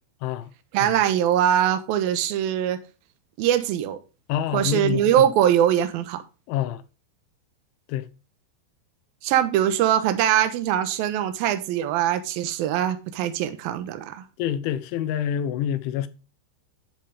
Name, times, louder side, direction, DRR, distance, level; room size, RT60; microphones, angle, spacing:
voice 1, 0.7-2.8 3.4-4.0 4.5-6.2 9.2-14.2, right 11 dB, 70° right, 2.4 m, -22 dB
voice 2, 4.3-5.0 6.5-6.8 7.9-8.1 14.4-16.1, left 10 dB, 80° left, 3.3 m, -26 dB
10.5 x 7.4 x 3.5 m
omnidirectional pair, 5.4 m